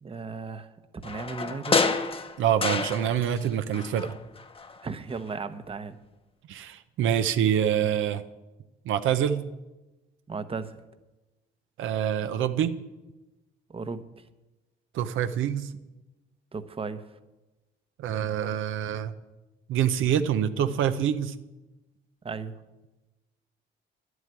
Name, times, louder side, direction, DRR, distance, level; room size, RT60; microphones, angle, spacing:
voice 1, 0.0-1.9 4.8-6.0 10.3-10.8 13.7-14.2 16.5-17.1 22.2-22.6, right 4 dB, 30° right, 11 dB, 0.9 m, -36 dB
sound 1, 1.0-3.5 3.7-4.8 5.1-5.2, left 4 dB, 30° left, 1.0 m, -29 dB
voice 2, 2.4-4.1 6.5-8.2 8.8-9.4 11.8-12.7 14.9-15.7 18.0-19.1 19.7-21.3, right 9 dB, 85° right, 10 dB, 0.8 m, -26 dB
11.0 x 8.0 x 9.5 m, 1.1 s
cardioid pair, 90°, 20 cm